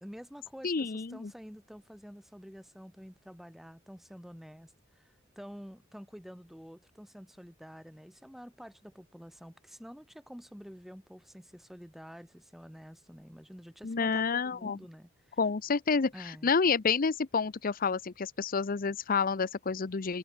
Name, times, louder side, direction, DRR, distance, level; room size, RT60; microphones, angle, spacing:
voice 1, 0.0-15.4 16.1-16.5, equal, ahead, 1.2 m, -49 dB
voice 2, 0.6-1.3 13.8-14.8 15.4-20.2, left 5 dB, 45° left, 0.6 m, -29 dB
head